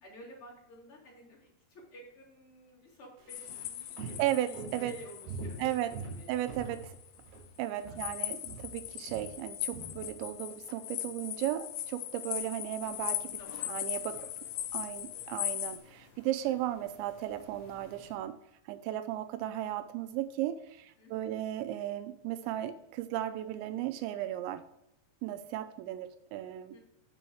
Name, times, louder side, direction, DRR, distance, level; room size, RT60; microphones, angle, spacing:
voice 1, 0.0-6.5 7.9-8.2 13.3-13.7 14.1-14.3 21.0-21.5 26.7-26.8, equal, 35° left, -5 dB, 2.7 m, -53 dB
Walk footsteps, 3.2-7.5 7.8-8.2 8.4-10.8 11.1-11.2, right 3 dB, 70° right, 3.8 m, -44 dB
sound 1, 3.3-7.0 8.0-15.8, left 13 dB, 80° left, 2.2 m, -39 dB
voice 2, 4.0-4.9 5.6-5.9 6.3-7.0 7.6-13.4 13.7-14.3 14.7-18.4 18.7-24.6 25.2-26.7, right 13 dB, 85° right, 10 dB, 2.9 m, -35 dB
sound 2, 12.8-18.2, left 3 dB, 60° left, 2.9 m, -57 dB
6.9 x 6.5 x 4.7 m, 0.83 s
omnidirectional pair, 5.2 m